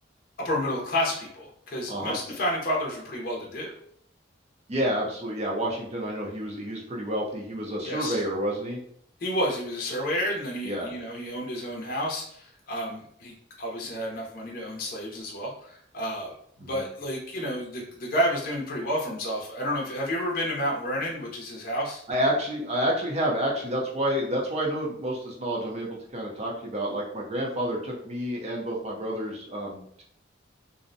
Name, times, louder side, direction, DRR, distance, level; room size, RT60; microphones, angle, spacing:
voice 1, 0.4-3.7 7.8-8.2 9.2-13.3 13.6-16.3 16.6-22.0, equal, 50° left, -2 dB, 0.5 m, -30 dB
voice 2, 4.7-8.8 10.6-10.9 16.6-16.9 22.1-30.0, equal, 35° right, -2 dB, 0.5 m, -29 dB
2.5 x 2.0 x 2.5 m, 0.64 s
head